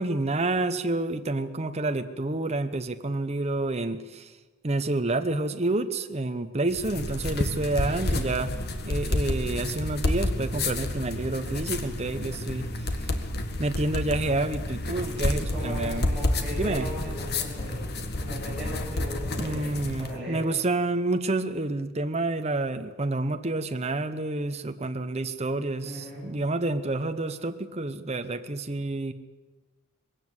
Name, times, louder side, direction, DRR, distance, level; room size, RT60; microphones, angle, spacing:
voice 1, 0.0-4.3 4.6-8.5 8.8-12.7 13.6-16.1 16.5-16.9 19.3-29.1, right 2 dB, 30° right, 8 dB, 0.9 m, -29 dB
sound 1, 6.7-20.1, left 1 dB, 50° left, 1.7 m, -30 dB
voice 2, 7.8-8.3 15.0-17.8 18.2-20.4 25.8-26.5, equal, 5° right, -8 dB, 6.3 m, -38 dB
20.5 x 17.0 x 8.0 m, 1.2 s
head